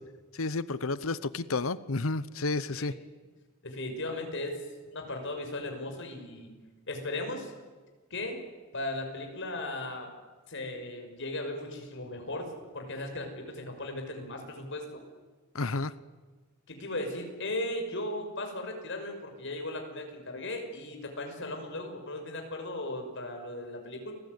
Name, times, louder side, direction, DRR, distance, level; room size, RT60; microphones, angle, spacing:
voice 1, 0.3-2.9 15.5-15.9, left 3 dB, 75° left, 16 dB, 0.9 m, -31 dB
voice 2, 3.6-6.5 6.9-7.5 8.1-8.4 8.7-10.1 10.5-15.0 16.7-24.1, left 1 dB, 60° left, 4 dB, 6.0 m, -37 dB
29.5 x 20.0 x 9.5 m, 1.3 s
head